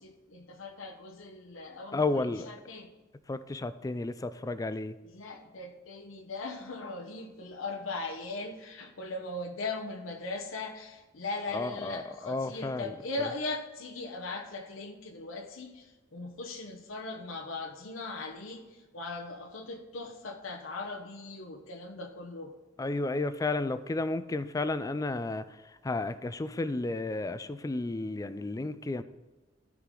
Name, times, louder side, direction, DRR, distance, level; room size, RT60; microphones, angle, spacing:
voice 1, 0.0-2.9 5.0-22.5, left 3 dB, 85° left, 2 dB, 1.0 m, -39 dB
voice 2, 1.9-2.5 3.3-5.0 11.5-12.9 22.8-25.6 25.8-29.0, left 2 dB, 15° left, 13 dB, 0.4 m, -32 dB
12.5 x 4.9 x 3.8 m, 1.2 s
head